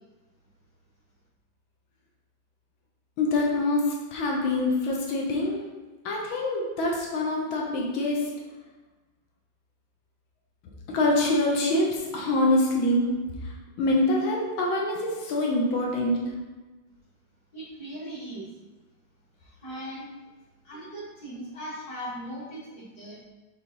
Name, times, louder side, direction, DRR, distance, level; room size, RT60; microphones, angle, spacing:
voice 1, 3.2-5.6 6.1-8.3 10.9-13.1 13.4-13.5 13.8-16.2, left 2 dB, 80° left, -2 dB, 1.9 m, -25 dB
voice 2, 17.5-18.5 19.4-20.1 20.6-23.2, right 1 dB, 50° left, -7 dB, 2.6 m, -39 dB
5.9 x 5.3 x 4.0 m, 1.2 s
omnidirectional pair, 2.2 m